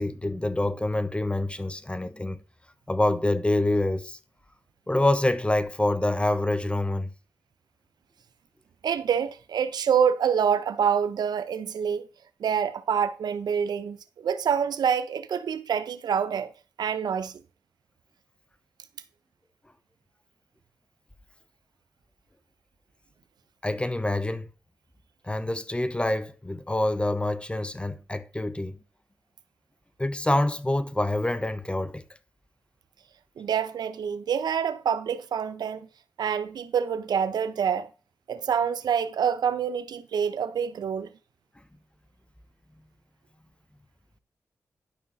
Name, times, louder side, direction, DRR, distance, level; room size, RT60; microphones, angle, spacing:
voice 1, 0.0-2.4 2.9-4.2 4.9-7.1 23.6-24.5 25.2-28.8 30.0-32.0, left 1 dB, 15° left, 1.1 m, -26 dB
voice 2, 8.8-12.1 12.4-16.5 16.8-17.4 33.4-35.9 36.2-37.9 38.3-41.1, right 7 dB, 80° right, 0.8 m, -26 dB
12.0 x 5.5 x 4.1 m
supercardioid pair, 45°, 7 cm